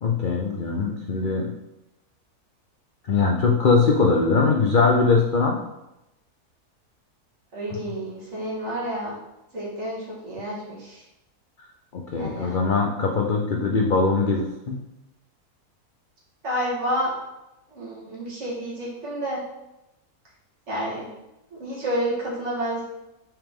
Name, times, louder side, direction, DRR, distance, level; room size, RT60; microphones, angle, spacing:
voice 1, 0.0-1.5 3.0-5.6 7.7-7.8 11.9-14.8, left 4 dB, 65° left, 1 dB, 0.5 m, -21 dB
voice 2, 7.5-9.2 9.5-11.0 12.1-12.6 16.4-17.1 17.7-19.4 20.7-21.1 21.5-22.8, equal, 50° right, -5 dB, 2.1 m, -29 dB
5.8 x 5.1 x 3.7 m, 0.93 s
omnidirectional pair, 1.7 m